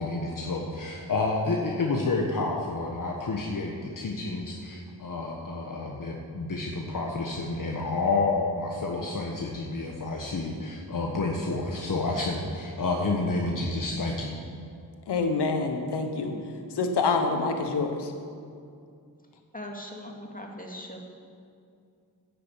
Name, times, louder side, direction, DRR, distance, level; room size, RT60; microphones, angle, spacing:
voice 1, 0.0-14.3, left 3 dB, 55° left, 0 dB, 1.4 m, -29 dB
voice 2, 15.1-16.4 16.7-18.1, left 4 dB, 85° left, 5 dB, 1.3 m, -26 dB
voice 3, 19.5-21.0, left 1 dB, 20° left, 0 dB, 2.3 m, -40 dB
10.0 x 7.6 x 8.4 m, 2.4 s
cardioid pair, 50°, 39 cm